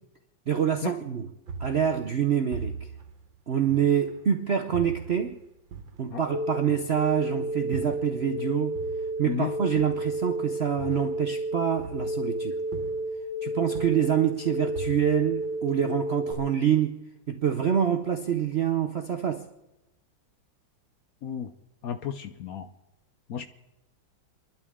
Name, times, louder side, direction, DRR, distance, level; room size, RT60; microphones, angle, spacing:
voice 1, 0.5-1.3 1.6-2.7 3.5-5.4 6.0-8.8 9.2-12.6 13.4-19.4, right 8 dB, 55° right, 5 dB, 0.7 m, -26 dB
sound 1, 1.5-4.3 4.7-8.5 8.8-12.4 12.7-13.3 13.6-16.0, right 4 dB, 85° right, 1.9 m, -40 dB
sound 2, 6.3-16.3, right 1 dB, 85° left, 2.5 m, -31 dB
voice 2, 21.8-22.7 23.3-23.5, left 8 dB, 65° left, 9 dB, 1.0 m, -32 dB
29.0 x 11.5 x 3.6 m, 0.97 s
omnidirectional pair, 2.0 m